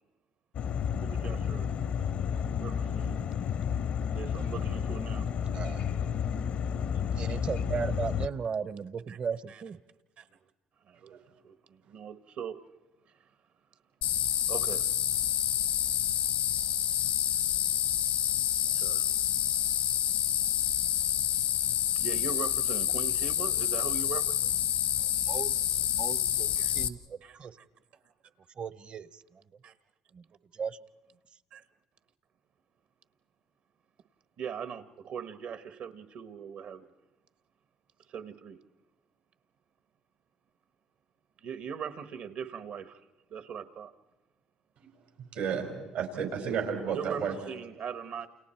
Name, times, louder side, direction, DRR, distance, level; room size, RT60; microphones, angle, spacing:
sound 1, 0.5-8.3, left 7 dB, 65° left, 0.7 m, -31 dB
voice 1, 0.9-1.7 2.6-3.2 4.1-5.3 7.7-8.0 9.1-9.2 10.2-10.3 10.9-11.2 11.4-12.6 14.5-14.8 18.8-19.2 22.0-24.6 26.6-26.7 27.2-27.4 29.6-29.7 31.5-31.6 34.4-36.8 38.1-38.6 41.4-43.0 43.3-43.9 46.9-48.3, right 7 dB, 70° right, 11 dB, 1.3 m, -40 dB
voice 2, 5.5-5.9 7.1-9.8 24.9-27.6 28.6-29.4 30.1-30.2 30.5-30.8, right 6 dB, 45° right, 16 dB, 0.9 m, -37 dB
sound 2, 14.0-26.9, left 11 dB, 80° left, 1.1 m, -28 dB
voice 3, 45.3-47.3, right 7 dB, 85° right, 3 dB, 5.0 m, -32 dB
29.0 x 29.0 x 4.5 m, 1.1 s
supercardioid pair, 80°, 2 cm